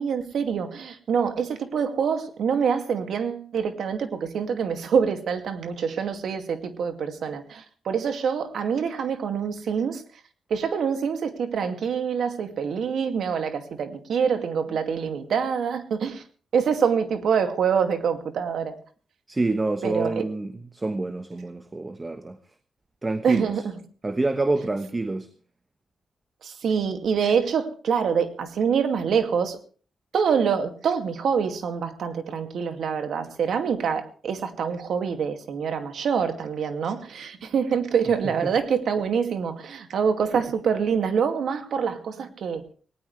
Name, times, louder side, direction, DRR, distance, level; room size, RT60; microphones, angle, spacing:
voice 1, 0.0-10.0 10.5-16.2 16.5-18.8 19.8-20.2 23.2-23.7 26.4-29.6 30.1-42.6, right 6 dB, 70° right, 2.3 m, -25 dB
voice 2, 19.3-22.4 23.0-23.5 24.0-25.3, right 2 dB, 20° right, 1.1 m, -27 dB
19.0 x 18.5 x 3.3 m
wide cardioid pair, 130°, 0 cm